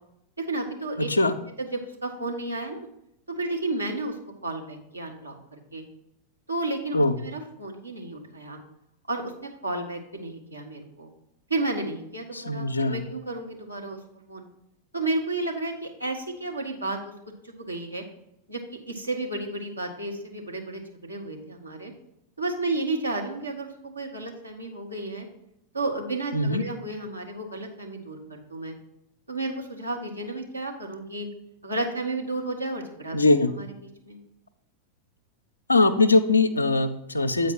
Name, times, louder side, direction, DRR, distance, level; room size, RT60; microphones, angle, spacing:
voice 1, 0.4-1.1 1.6-2.9 3.3-4.2 4.4-5.8 6.5-8.6 9.1-11.1 11.5-14.0 14.3-14.5 14.9-17.0 17.4-18.0 18.5-18.6 18.9-21.9 22.4-25.3 25.7-28.7 29.3-31.3 31.6-33.2 33.5-33.7 34.0-34.2, right 2 dB, 85° right, 1 dB, 1.1 m, -32 dB
voice 2, 12.3-13.0 26.3-26.6 33.1-33.5 35.7-37.5, left 2 dB, 80° left, 10 dB, 0.5 m, -21 dB
8.2 x 4.6 x 4.6 m, 0.81 s
figure-of-eight pair, 90°, 0 cm